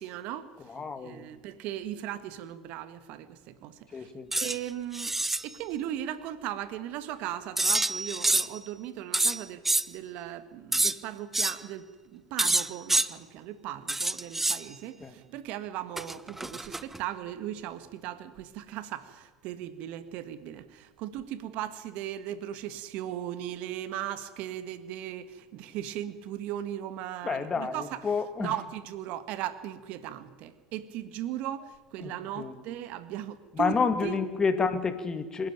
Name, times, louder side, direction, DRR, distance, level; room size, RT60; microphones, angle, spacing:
voice 1, 0.0-4.1 4.4-5.1 5.4-28.1 28.4-34.2, right 11 dB, 60° right, 13 dB, 1.6 m, -38 dB
voice 2, 0.7-1.2 3.9-4.3 15.0-15.1 27.2-28.5 32.0-32.5 33.5-35.5, left 5 dB, 25° left, 10 dB, 2.4 m, -29 dB
sound 1, 4.3-4.6 4.9-5.4 7.6-8.6 9.1-9.8 10.7-10.9 11.3-11.6 12.4-13.1 13.9-14.6 16.0-17.0, right 2 dB, 10° right, 0.9 m, -27 dB
26.0 x 11.5 x 9.1 m, 1.4 s
hypercardioid pair, 85°, 3 cm